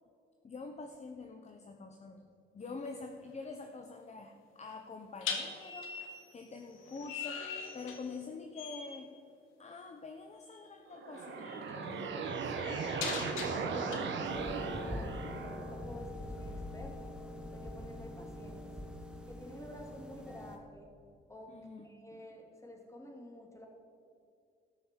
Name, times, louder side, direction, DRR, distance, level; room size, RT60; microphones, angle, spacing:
voice 1, 0.4-2.3 2.5-7.5 7.7-9.2 9.6-13.0 21.5-22.2, left 3 dB, 35° left, 4 dB, 1.1 m, -46 dB
sound 1, 2.6-2.9 5.2-8.3 8.5-9.0 10.5-10.6 11.1-14.0, left 6 dB, 80° left, 1.8 m, -42 dB
sound 2, 10.9-15.8, right 4 dB, 65° right, 1.5 m, -37 dB
voice 2, 13.7-17.1 17.5-18.8 19.3-20.9 21.3-21.6 21.8-23.7, equal, 15° left, 1 dB, 2.8 m, -49 dB
sound 3, 14.3-20.6, left 1 dB, 5° right, 1.6 m, -44 dB
13.5 x 6.4 x 7.7 m, 2.4 s
supercardioid pair, 75°, 21 cm